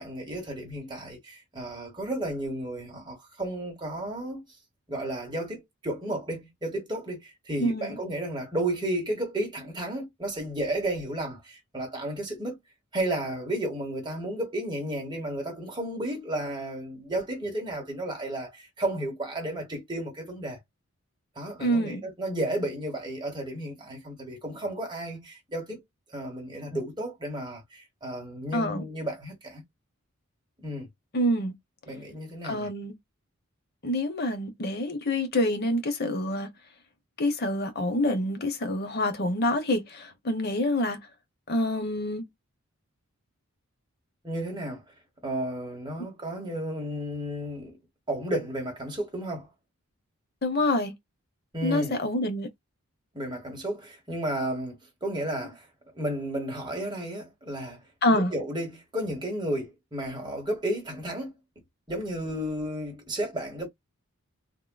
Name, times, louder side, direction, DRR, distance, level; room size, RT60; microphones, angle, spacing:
voice 1, 0.0-4.4 4.9-12.6 12.9-20.6 21.4-25.8 26.1-29.6 30.6-30.9 31.9-32.7 44.2-44.8 45.2-47.8 48.1-49.5 51.5-51.9 53.1-55.7 55.9-57.8 58.1-61.3 61.9-63.7, right 1 dB, 20° right, 1.2 m, -33 dB
voice 2, 7.6-8.0 21.6-22.0 28.5-28.8 31.1-31.5 32.4-32.9 33.8-36.5 37.2-41.0 41.5-42.2 50.4-50.9 51.6-52.5 58.0-58.3, left 1 dB, 45° left, 0.7 m, -26 dB
3.5 x 2.4 x 2.2 m
head